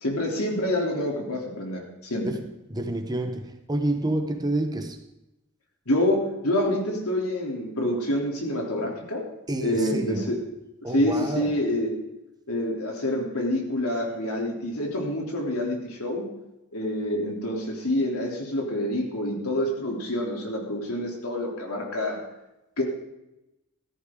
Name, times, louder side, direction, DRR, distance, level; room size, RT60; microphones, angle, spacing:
voice 1, 0.0-2.3 5.9-9.2 9.6-10.4 10.9-11.9 12.5-16.2 16.7-22.2 22.8-22.9, left 1 dB, 80° left, 0 dB, 3.3 m, -27 dB
voice 2, 2.2-5.0 9.5-10.4 10.8-11.6, right 1 dB, 20° right, 6 dB, 1.0 m, -29 dB
15.0 x 13.5 x 3.8 m, 0.94 s
head